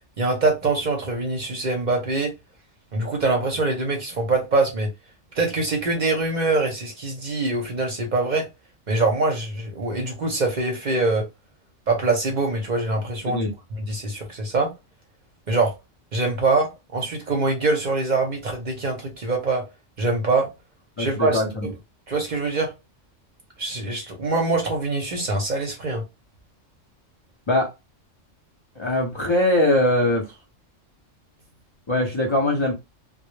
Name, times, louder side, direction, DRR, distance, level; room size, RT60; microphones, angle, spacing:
voice 1, 0.2-2.3 2.9-4.9 5.3-8.5 8.9-11.3 11.9-13.5 13.8-14.7 15.5-15.7 16.1-19.6 20.0-20.5 21.0-21.7 22.1-22.7 23.6-26.0, right 3 dB, 45° right, 0.6 m, -24 dB
voice 2, 21.0-21.7 27.5-27.7 28.8-30.4 31.9-32.7, left 1 dB, 50° left, 0.3 m, -21 dB
2.1 x 2.0 x 3.0 m
omnidirectional pair, 1.3 m